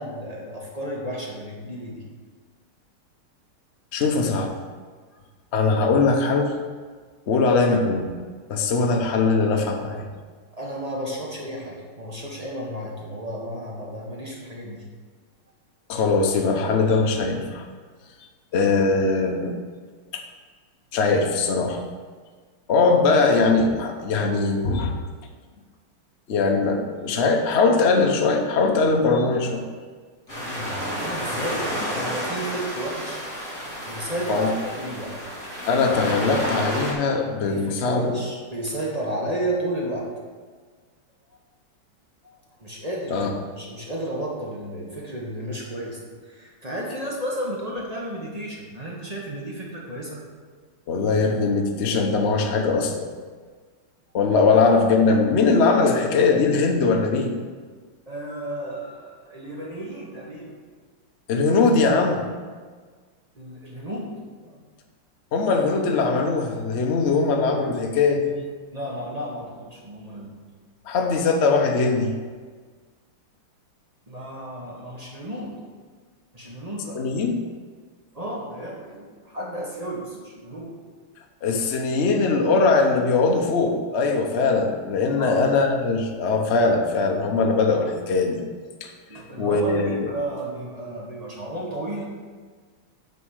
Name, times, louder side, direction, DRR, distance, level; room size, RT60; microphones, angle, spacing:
voice 1, 0.0-2.0 5.1-5.2 10.5-14.8 30.3-33.2 33.9-35.1 37.5-40.0 42.2-46.0 46.3-50.2 58.1-60.5 63.3-64.1 64.4-64.6 68.7-70.4 74.1-75.5 76.3-77.0 78.1-80.7 85.2-85.4 89.1-92.1, right 1 dB, 25° right, -3 dB, 1.0 m, -33 dB
voice 2, 3.9-4.5 5.5-6.5 7.3-8.1 8.5-10.1 15.9-17.6 18.5-19.6 20.1-20.2 20.9-21.8 22.7-24.9 26.3-29.6 34.3-34.5 35.7-38.2 43.1-43.3 50.9-53.1 54.1-57.4 61.3-62.2 65.3-68.3 70.8-72.1 76.9-77.4 81.4-88.4 88.8-90.1, left 4 dB, 60° left, 2 dB, 0.7 m, -21 dB
sound 1, 30.3-36.9, equal, 40° left, 3.3 m, -30 dB
9.3 x 4.2 x 6.4 m, 1.5 s
omnidirectional pair, 2.4 m